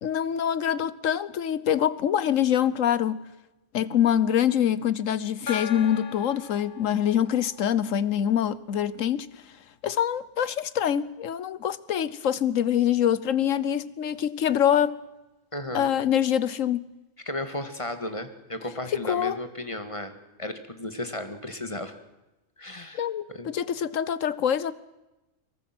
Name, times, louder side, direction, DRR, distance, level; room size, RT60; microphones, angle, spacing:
voice 1, 0.0-3.2 3.7-9.3 9.8-15.0 15.7-16.9 19.1-19.4 23.0-24.7, left 9 dB, 85° left, 1.3 m, -25 dB
Gong, 5.5-8.7, left 5 dB, 45° left, 1.3 m, -40 dB
voice 2, 15.5-15.9 17.3-22.0 22.6-23.5, left 1 dB, 25° left, 2.0 m, -35 dB
25.0 x 22.5 x 6.1 m
omnidirectional pair, 1.3 m